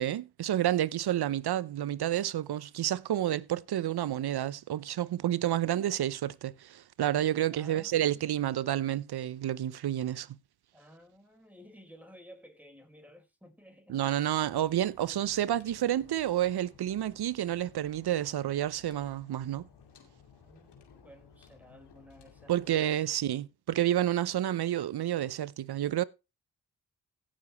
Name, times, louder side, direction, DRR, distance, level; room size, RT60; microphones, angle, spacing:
voice 1, 0.0-10.3 13.9-19.7 22.5-26.0, right 12 dB, 70° right, 0.8 m, -30 dB
voice 2, 7.5-8.2 10.7-14.0 20.4-23.0, equal, 5° right, 4.7 m, -55 dB
sound 1, 14.4-22.8, left 6 dB, 80° left, 2.5 m, -57 dB
16.5 x 7.5 x 3.1 m
supercardioid pair, 45°, 40 cm